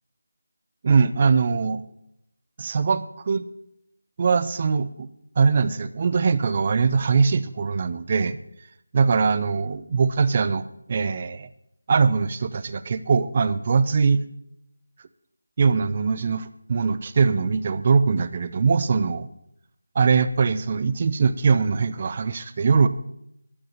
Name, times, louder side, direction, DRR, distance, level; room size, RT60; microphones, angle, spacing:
voice 1, 0.8-1.8 2.6-3.5 4.2-5.1 5.4-8.4 8.9-10.6 10.9-11.5 11.9-14.2 15.6-19.3 20.0-22.9, right 5 dB, 25° right, 15 dB, 0.5 m, -21 dB
12.0 x 9.3 x 7.2 m, 0.79 s
figure-of-eight pair, 175°, 0 cm